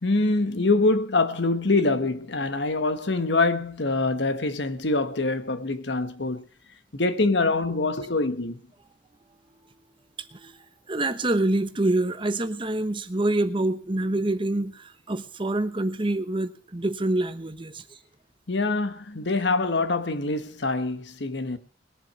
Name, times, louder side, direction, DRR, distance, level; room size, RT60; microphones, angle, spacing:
voice 1, 0.0-6.4 6.9-8.6 18.5-21.6, left 3 dB, 80° left, 1.3 m, -24 dB
voice 2, 10.9-17.8, right 2 dB, 30° right, 1.0 m, -26 dB
20.5 x 7.5 x 6.3 m
head